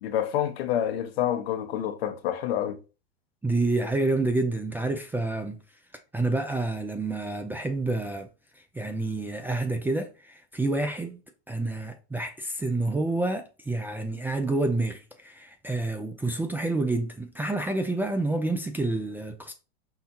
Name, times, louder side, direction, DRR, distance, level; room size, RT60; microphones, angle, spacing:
voice 1, 0.0-2.8, left 10 dB, 65° left, 1.0 m, -28 dB
voice 2, 3.4-5.6 6.1-8.3 8.7-11.2 11.5-19.5, right 2 dB, 5° right, 0.4 m, -28 dB
5.7 x 2.2 x 4.2 m
hypercardioid pair, 110°, 32 cm